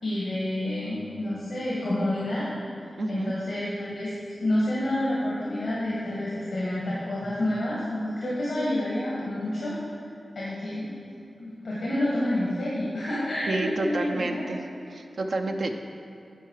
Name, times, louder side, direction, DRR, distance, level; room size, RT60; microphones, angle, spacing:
voice 1, 0.0-2.4 3.1-4.1 4.4-9.8 10.3-10.8 11.4-14.4, left 1 dB, 85° left, -7 dB, 1.7 m, -28 dB
voice 2, 3.0-3.3 13.5-14.6 14.9-15.7, right 2 dB, 70° right, 4 dB, 0.5 m, -29 dB
9.9 x 4.6 x 4.8 m, 2.6 s
cardioid pair, 55°, 0 cm